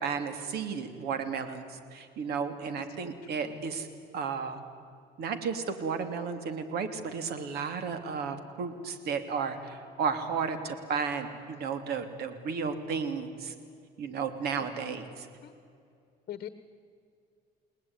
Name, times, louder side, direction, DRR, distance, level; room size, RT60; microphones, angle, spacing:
voice 1, 0.0-3.9 4.1-4.6 5.2-13.5 14.0-15.3, right 5 dB, 70° right, 9 dB, 3.1 m, -33 dB
voice 2, 3.0-3.6 14.6-15.1 15.4-15.5 16.3-16.5, left 11 dB, 55° left, 12 dB, 1.3 m, -44 dB
30.0 x 19.0 x 9.8 m, 2.4 s
cardioid pair, 110°, 17 cm